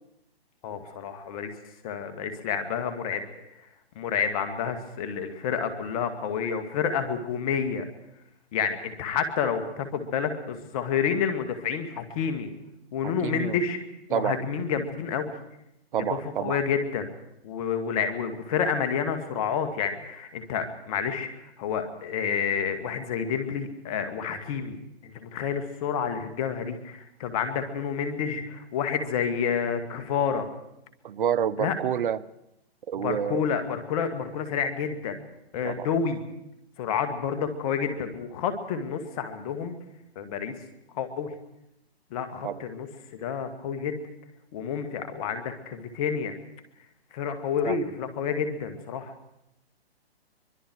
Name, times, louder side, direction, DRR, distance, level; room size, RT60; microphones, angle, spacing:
voice 1, 0.6-1.5 1.8-3.2 3.6-3.7 4.0-7.9 8.5-12.5 12.9-13.8 14.1-15.3 16.1-17.1 17.4-24.8 25.0-30.5 31.6-31.7 33.0-35.2 35.5-36.2 36.8-39.8 40.2-40.6 40.9-41.3 42.1-42.9 43.2-44.0 44.5-46.3 47.1-49.1, left 7 dB, 35° left, 8 dB, 2.2 m, -29 dB
voice 2, 13.0-13.6 14.1-14.4 15.9-16.6 31.0-32.2 32.9-33.5 35.6-35.9 42.4-42.6 47.6-47.8, right 9 dB, 55° right, 19 dB, 1.0 m, -28 dB
23.5 x 23.5 x 4.7 m, 0.83 s
hypercardioid pair, 145°, 32 cm